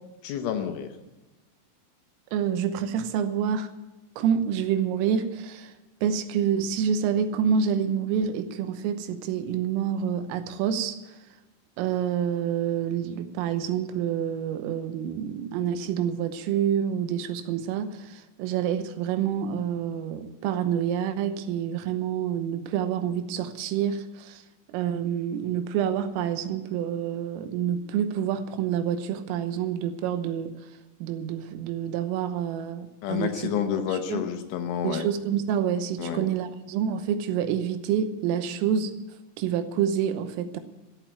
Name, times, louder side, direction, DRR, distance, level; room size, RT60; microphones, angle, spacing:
voice 1, 0.2-0.9 33.0-35.1 36.0-36.3, left 8 dB, 75° left, 6 dB, 3.5 m, -29 dB
voice 2, 2.3-3.7 4.2-5.7 6.0-11.0 11.8-24.4 24.7-30.5 31.0-33.3 33.9-34.2 34.8-38.9 39.4-40.6, right 8 dB, 85° right, 10 dB, 3.6 m, -27 dB
14.0 x 8.8 x 9.2 m, 1.1 s
omnidirectional pair, 5.8 m